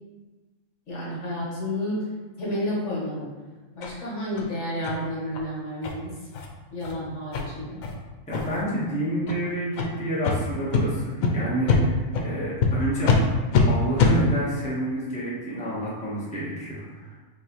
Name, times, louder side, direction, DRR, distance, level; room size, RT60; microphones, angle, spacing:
voice 1, 0.9-2.1 2.4-3.3 3.7-6.1 6.7-7.8, left 1 dB, 60° left, -5 dB, 1.4 m, -30 dB
sound 1, 3.8-3.9 4.4-4.5 4.8-5.0 5.3-5.4 5.8-5.9 6.3-6.5 6.8-6.9 7.3-7.4 7.8-7.9 8.3-8.6 9.2-9.4 9.7-9.9 10.2-10.4 10.7-10.8 11.2-11.3 11.7-11.8 12.1-12.3 12.6-12.7 13.0-13.2 13.5-13.6 14.0-14.1, left 5 dB, 85° left, 1.0 m, -22 dB
voice 2, 8.3-13.1 13.7-17.2, right 1 dB, 5° left, -8 dB, 0.9 m, -29 dB
6.0 x 2.6 x 3.0 m, 1.3 s
omnidirectional pair, 1.4 m